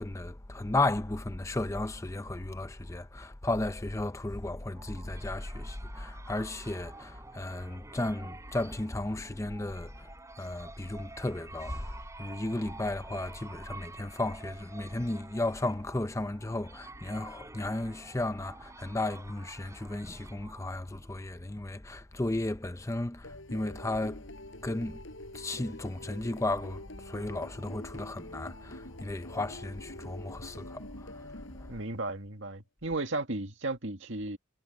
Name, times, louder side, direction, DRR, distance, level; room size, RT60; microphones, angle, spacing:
voice 1, 0.0-10.1 10.4-11.9 12.2-24.2 24.6-25.0 25.3-31.3 31.6-31.7, left 2 dB, 15° left, 0.6 m, -34 dB
sound 1, 4.3-21.3, right 3 dB, 15° right, 6.1 m, -50 dB
sound 2, 23.2-32.2, left 1 dB, 65° left, 6.7 m, -46 dB
voice 2, 31.7-34.4, right 2 dB, 60° right, 2.1 m, -34 dB
head